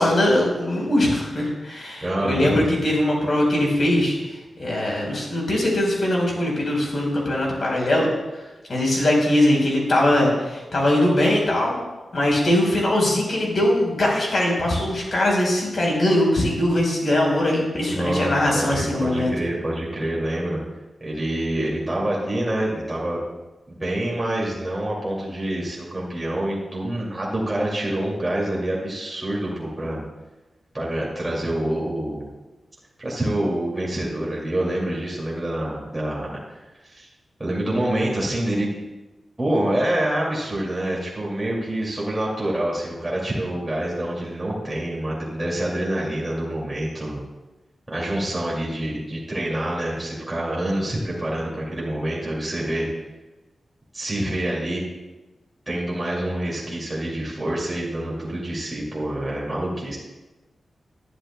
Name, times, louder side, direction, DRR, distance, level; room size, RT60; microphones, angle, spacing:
voice 1, 0.0-4.3 4.6-8.1 8.7-11.8 12.1-19.3, left 1 dB, 50° left, -2 dB, 4.1 m, -21 dB
voice 2, 2.0-2.5 17.9-20.6 21.0-23.2 23.7-30.0 30.7-32.3 33.0-36.6 36.9-37.1 37.4-38.7 39.4-47.2 47.9-52.9 53.9-54.8 55.7-60.0, right 1 dB, 15° right, -5 dB, 2.4 m, -26 dB
20.0 x 11.0 x 2.2 m, 1.1 s
wide cardioid pair, 140°, 0 cm